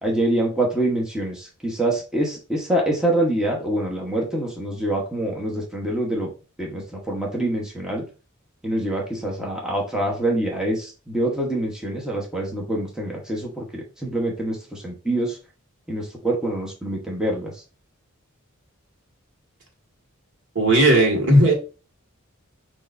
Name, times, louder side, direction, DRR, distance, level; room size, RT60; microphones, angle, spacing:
voice 1, 0.0-6.3 6.6-8.0 8.6-15.4 15.9-17.5, right 1 dB, 5° right, 1.1 m, -25 dB
voice 2, 20.6-21.5, right 1 dB, 65° right, 1.8 m, -16 dB
6.5 x 3.1 x 2.6 m
head